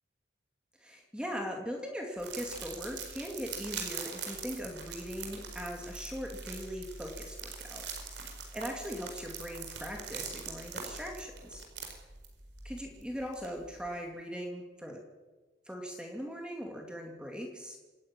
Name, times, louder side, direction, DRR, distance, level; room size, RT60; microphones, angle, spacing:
voice 1, 0.8-11.6 12.6-15.0 15.7-17.8, equal, 5° right, 1 dB, 2.3 m, -40 dB
sound 1, 2.2-13.9, right 5 dB, 60° right, 4.5 m, -43 dB
26.0 x 10.5 x 9.7 m, 1.2 s
head